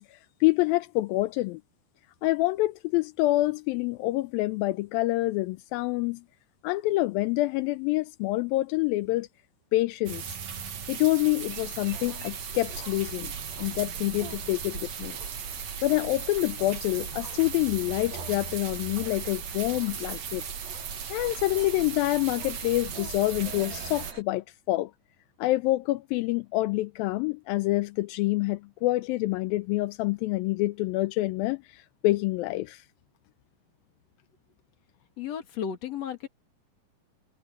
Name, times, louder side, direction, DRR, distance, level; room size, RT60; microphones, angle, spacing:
voice 1, 0.0-1.6 2.2-6.2 6.6-9.3 9.7-10.2 10.9-13.3 13.6-15.2 15.8-20.4 21.1-24.9 25.4-32.8, left 18 dB, 85° left, 2.4 m, -27 dB
sound 1, 10.0-24.1, right 7 dB, 55° right, 3.0 m, -37 dB
sound 2, 11.5-24.2, right 4 dB, 70° right, 6.9 m, -45 dB
voice 2, 35.2-36.3, left 8 dB, 50° left, 3.0 m, -34 dB
omnidirectional pair, 4.2 m